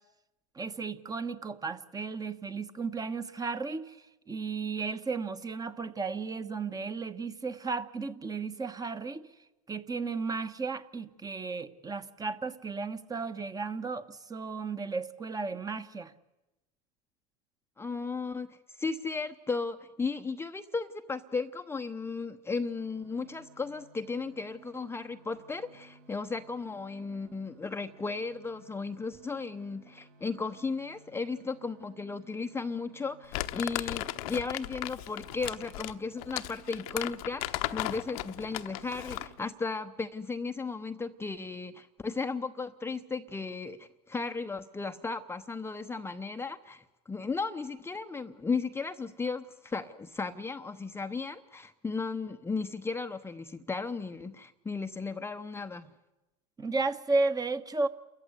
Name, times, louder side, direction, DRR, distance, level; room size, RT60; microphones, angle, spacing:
voice 1, 0.5-9.2 9.7-16.1 56.6-57.9, right 4 dB, 20° right, 10 dB, 1.3 m, -34 dB
voice 2, 17.8-55.9, left 4 dB, 15° left, 8 dB, 0.8 m, -35 dB
sound 1, 22.6-39.4, right 4 dB, 55° right, 2.6 m, -58 dB
Crumpling crinkling, 33.3-39.4, left 17 dB, 70° left, 1.0 m, -36 dB
28.5 x 14.5 x 9.6 m, 1.0 s
hypercardioid pair, 100°, 19 cm